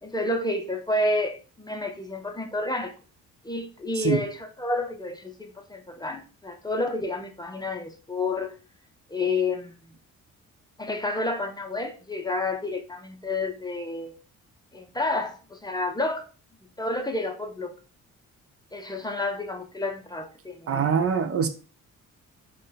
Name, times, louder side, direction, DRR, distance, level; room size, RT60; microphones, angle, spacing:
voice 1, 0.0-2.9 3.4-8.5 9.1-9.8 10.8-14.1 14.7-16.3 16.8-17.7 18.7-20.9, left 2 dB, 15° left, 4 dB, 0.6 m, -30 dB
voice 2, 20.7-21.5, right 7 dB, 50° right, 8 dB, 0.5 m, -24 dB
3.7 x 2.2 x 3.8 m, 0.36 s
cardioid pair, 90°, 30 cm